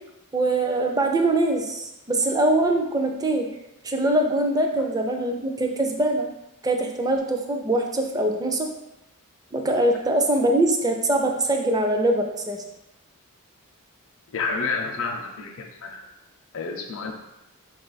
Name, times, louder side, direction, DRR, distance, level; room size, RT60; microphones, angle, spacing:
voice 1, 0.3-3.5 3.8-6.3 6.6-8.7 9.5-12.6, right 1 dB, 15° right, 2 dB, 0.4 m, -23 dB
voice 2, 14.3-16.0 16.5-17.1, left 4 dB, 65° left, 1 dB, 0.5 m, -29 dB
4.7 x 2.4 x 3.9 m, 0.94 s
head